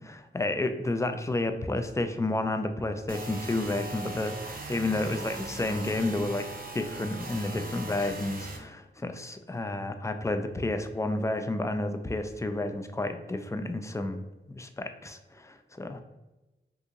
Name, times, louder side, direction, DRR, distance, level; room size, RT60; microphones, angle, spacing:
voice 1, 0.0-6.5 6.7-16.0, left 2 dB, 15° left, 7 dB, 0.3 m, -31 dB
sound 1, 3.1-8.6, right 2 dB, 45° right, 0.6 m, -39 dB
2.8 x 2.5 x 3.7 m, 1.0 s
wide cardioid pair, 60°, 20 cm